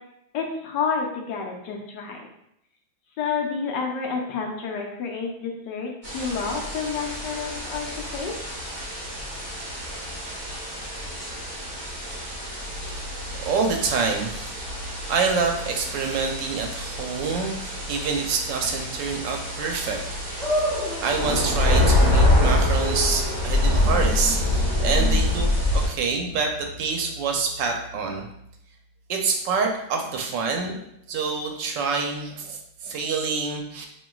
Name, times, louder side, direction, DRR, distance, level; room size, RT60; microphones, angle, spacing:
voice 1, 0.3-2.3 3.2-8.3, left 5 dB, 75° left, 1 dB, 1.1 m, -29 dB
sound 1, 6.0-25.9, left 1 dB, 30° right, 0.7 m, -26 dB
voice 2, 13.4-14.5 14.7-20.0 20.6-25.5 25.7-28.3 29.1-30.8 31.1-33.9, right 4 dB, 75° right, 3 dB, 1.2 m, -27 dB
sound 2, 20.4-26.8, left 1 dB, 25° left, 1.0 m, -33 dB
5.2 x 2.8 x 2.3 m, 0.78 s
omnidirectional pair, 2.1 m